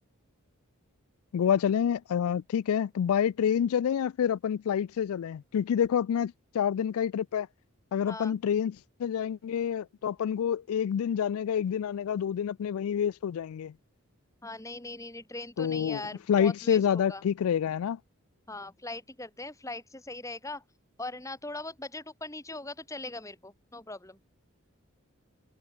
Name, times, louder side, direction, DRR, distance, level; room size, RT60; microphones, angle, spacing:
voice 1, 1.3-7.5 7.9-13.7 15.6-16.0 16.3-18.0, left 8 dB, 80° left, 0.3 m, -28 dB
voice 2, 8.1-8.4 14.4-17.2 18.5-20.6 21.0-24.2, left 2 dB, 15° left, 2.5 m, -40 dB
head